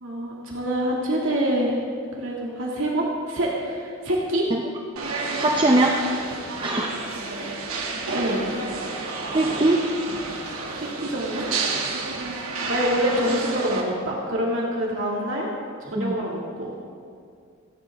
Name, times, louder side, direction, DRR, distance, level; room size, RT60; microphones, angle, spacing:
voice 1, 0.0-1.8 2.2-4.5 8.1-8.4 10.8-11.4 12.7-15.5 15.8-16.7, equal, 65° right, -3 dB, 2.3 m, -26 dB
sound 1, 5.0-13.8, right 3 dB, 90° right, 2.4 m, -30 dB
voice 2, 5.4-6.0 6.6-6.9 9.3-9.9 16.0-16.2, right 2 dB, 25° right, 1 dB, 0.8 m, -21 dB
29.0 x 11.5 x 3.6 m, 2.3 s
head